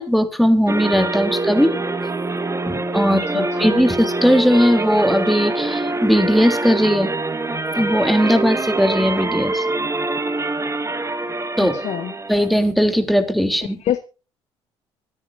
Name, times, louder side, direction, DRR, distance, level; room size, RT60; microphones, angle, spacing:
voice 1, 0.0-1.8 2.7-7.1 7.8-9.6 11.6-11.8 12.3-13.8, equal, ahead, 3.2 m, -18 dB
sound 1, 0.7-12.5, right 2 dB, 20° right, 1.5 m, -24 dB
voice 2, 3.1-3.8 11.7-12.1 13.8-14.0, left 10 dB, 55° left, 1.1 m, -26 dB
25.0 x 9.9 x 2.7 m
hypercardioid pair, 50°, 14 cm